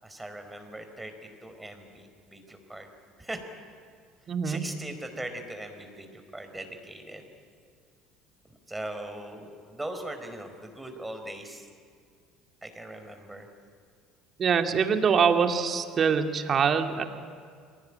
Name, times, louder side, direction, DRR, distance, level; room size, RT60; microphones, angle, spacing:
voice 1, 0.0-2.9 3.2-3.4 4.4-7.2 8.7-11.7 12.6-13.5, right 1 dB, 10° right, 6 dB, 4.9 m, -40 dB
voice 2, 4.3-4.6 14.4-17.1, right 6 dB, 40° right, 6 dB, 2.5 m, -24 dB
29.5 x 22.5 x 8.9 m, 2.1 s
hypercardioid pair, 65°, 0 cm